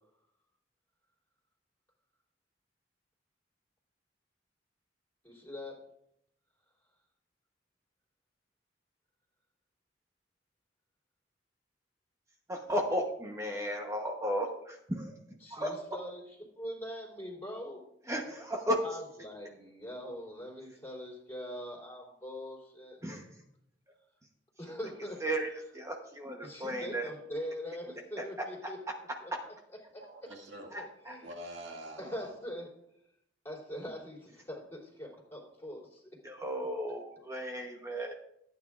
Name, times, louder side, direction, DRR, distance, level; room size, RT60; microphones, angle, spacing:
voice 1, 5.2-5.8 15.4-17.8 18.8-23.2 24.6-25.2 26.4-30.3 30.8-31.3 32.0-32.7 33.4-36.2 37.9-38.1, equal, 15° left, -3 dB, 3.3 m, -43 dB
voice 2, 12.5-15.1 15.5-15.8 18.1-18.8 23.0-23.3 25.2-25.5 25.7-27.1 28.6-28.7 30.7-31.1 36.2-38.1, equal, 15° right, 2 dB, 0.9 m, -34 dB
voice 3, 30.0-30.7 31.2-32.3, right 1 dB, 85° right, 1 dB, 1.9 m, -45 dB
14.5 x 9.3 x 2.4 m, 0.75 s
head